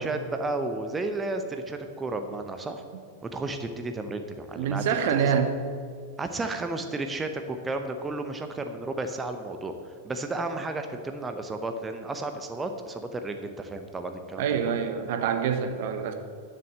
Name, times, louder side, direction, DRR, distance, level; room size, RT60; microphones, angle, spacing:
voice 1, 0.0-2.8 3.3-4.8 5.2-5.4 6.2-14.7, right 2 dB, 15° right, 6 dB, 0.8 m, -33 dB
voice 2, 4.6-5.6 14.4-16.1, right 7 dB, 50° right, 7 dB, 1.0 m, -26 dB
10.5 x 6.8 x 7.5 m, 2.1 s
figure-of-eight pair, 90°, 0 cm